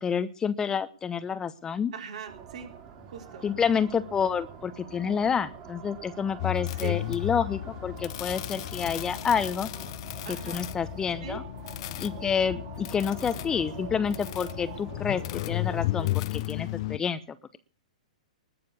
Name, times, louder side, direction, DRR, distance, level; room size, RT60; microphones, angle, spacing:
voice 1, 0.0-1.9 3.4-9.7 10.5-11.4 12.0-15.2 15.5-17.4, left 7 dB, 15° left, 13 dB, 0.9 m, -28 dB
voice 2, 1.9-2.7 3.1-3.5 6.7-7.0 10.2-10.7 11.2-11.4, right 7 dB, 60° right, 4 dB, 3.7 m, -40 dB
sound 1, 2.3-15.9, right 7 dB, 35° right, 4.1 m, -46 dB
sound 2, 6.4-17.0, left 17 dB, 45° left, 0.6 m, -34 dB
20.0 x 7.0 x 7.0 m, 0.38 s
figure-of-eight pair, 110°, 4 cm